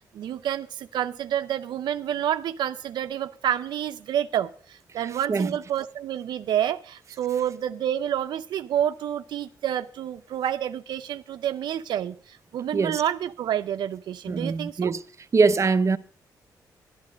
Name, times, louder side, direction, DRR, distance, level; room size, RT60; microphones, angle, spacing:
voice 1, 0.1-14.9, right 10 dB, 80° right, 0.6 m, -29 dB
voice 2, 14.3-15.0 15.3-16.0, right 4 dB, 40° right, 0.8 m, -22 dB
11.5 x 10.5 x 5.1 m
cardioid pair, 80°, 8 cm